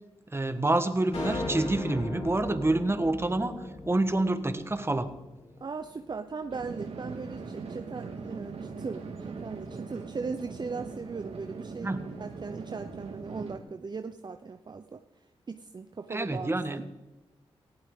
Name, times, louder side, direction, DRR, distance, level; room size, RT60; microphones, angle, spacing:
voice 1, 0.3-3.6 3.9-5.1 11.8-12.0 16.1-16.8, right 2 dB, 25° right, 10 dB, 1.4 m, -27 dB
sound 1, 1.1-5.6, left 2 dB, 75° left, 3.8 m, -37 dB
voice 2, 5.6-15.0 15.5-16.8, right 4 dB, 45° right, 8 dB, 0.7 m, -38 dB
sound 2, 6.5-13.6, right 4 dB, 70° right, 1.9 m, -41 dB
18.5 x 14.5 x 3.8 m, 1.1 s
cardioid pair, 50°, 11 cm